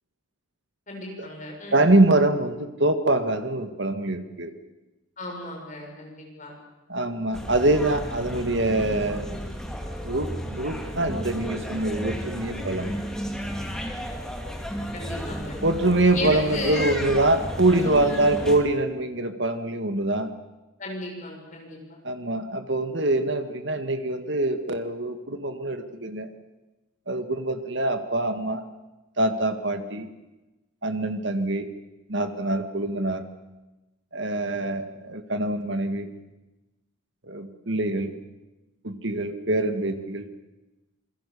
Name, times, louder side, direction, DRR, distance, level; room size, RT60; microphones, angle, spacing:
voice 1, 0.9-1.9 5.2-6.5 14.9-15.6 16.1-16.9 17.8-18.3 20.8-21.8, left 2 dB, 35° left, 0 dB, 7.2 m, -35 dB
voice 2, 1.7-4.5 6.9-9.5 10.0-13.0 15.6-20.3 22.0-26.3 27.1-28.6 29.2-30.1 30.8-31.7 32.1-33.3 34.1-36.1 37.3-38.1 38.8-40.3, right 2 dB, 55° right, 8 dB, 2.0 m, -24 dB
sound 1, 7.3-18.6, equal, 5° left, 2.6 m, -33 dB
27.0 x 21.5 x 7.0 m, 1.0 s
head